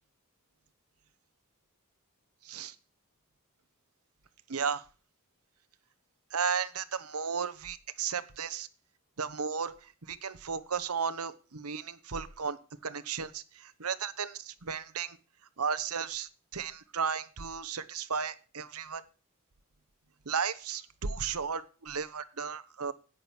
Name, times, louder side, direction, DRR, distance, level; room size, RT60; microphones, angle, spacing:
voice 1, 2.4-2.7 4.5-4.8 6.3-8.7 9.2-12.6 12.8-15.2 15.6-19.0 20.3-22.9, right 6 dB, 75° right, 13 dB, 1.0 m, -34 dB
11.0 x 8.9 x 6.1 m, 0.35 s
head